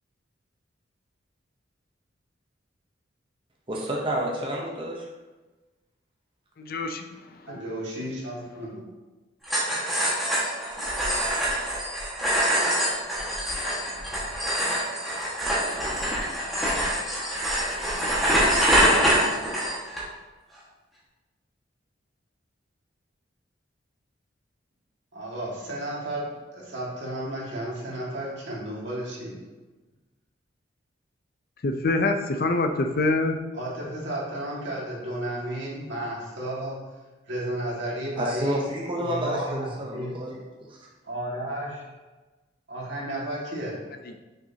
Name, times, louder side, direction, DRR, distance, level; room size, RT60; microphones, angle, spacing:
voice 1, 3.7-5.1 38.2-40.4 40.7-40.9, equal, 25° right, -2 dB, 0.8 m, -29 dB
voice 2, 6.6-7.6 31.6-33.4, left 2 dB, 50° left, 6 dB, 0.5 m, -25 dB
voice 3, 7.5-8.8 9.7-9.8 25.1-29.3 33.5-36.8 37.3-38.6 39.0-40.1 41.0-41.8 42.7-43.7, right 1 dB, 65° right, -4 dB, 1.9 m, -33 dB
sound 1, 9.4-20.0, equal, ahead, 1.6 m, -25 dB
6.4 x 6.2 x 2.8 m, 1.2 s
head